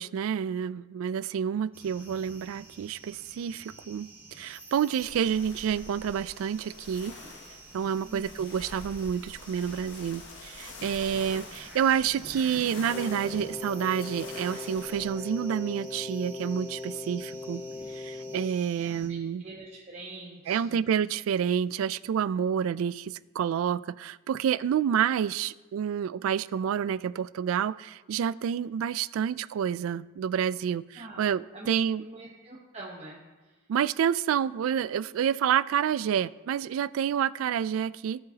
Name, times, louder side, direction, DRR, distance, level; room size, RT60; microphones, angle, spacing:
voice 1, 0.0-7.1 7.7-17.6 17.9-19.4 20.5-32.0 33.7-38.2, right 8 dB, 85° right, 17 dB, 0.3 m, -29 dB
sound 1, 1.7-19.1, right 2 dB, 10° right, 1.4 m, -50 dB
sound 2, 5.0-15.1, left 3 dB, 60° left, 0.9 m, -46 dB
voice 2, 8.1-8.5 18.8-19.2 19.4-20.8 31.0-31.3 31.5-33.2 33.4-33.5, right 2 dB, 35° right, -4 dB, 1.0 m, -44 dB
Wind instrument woodwind instrument, 12.9-18.6, left 3 dB, 20° left, 0.4 m, -39 dB
18.0 x 6.7 x 2.8 m, 1.2 s
head